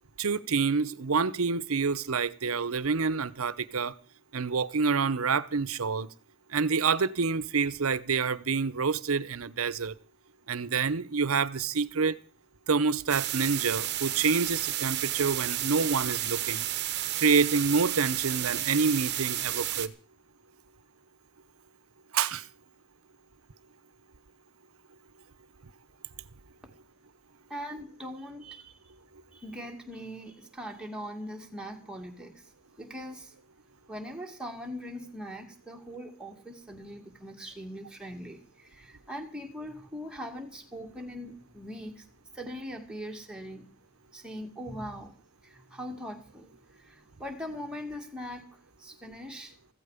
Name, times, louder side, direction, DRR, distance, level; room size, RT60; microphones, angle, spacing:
voice 1, 0.2-3.9 4.3-6.1 6.5-9.9 10.5-12.2 12.7-16.7 17.2-19.9 22.1-22.5, right 5 dB, 80° right, 0.8 m, -27 dB
sound 1, 13.1-19.9, right 13 dB, 50° right, 1.0 m, -32 dB
voice 2, 27.5-28.9 29.3-32.5 32.8-33.3 33.9-42.1 42.3-43.7 44.1-45.1 45.4-49.5, equal, 5° right, 2.3 m, -41 dB
15.0 x 15.0 x 5.1 m
head